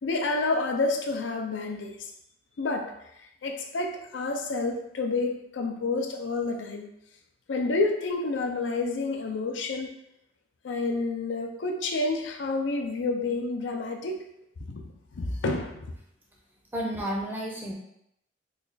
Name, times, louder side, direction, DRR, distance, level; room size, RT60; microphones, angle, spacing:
voice 1, 0.0-1.9 2.6-2.9 3.4-6.9 7.5-9.9 10.6-14.2 14.6-15.8, left 3 dB, 80° left, 3 dB, 0.5 m, -29 dB
voice 2, 16.7-17.7, equal, 10° right, -2 dB, 0.6 m, -31 dB
3.2 x 2.3 x 3.9 m, 0.78 s
head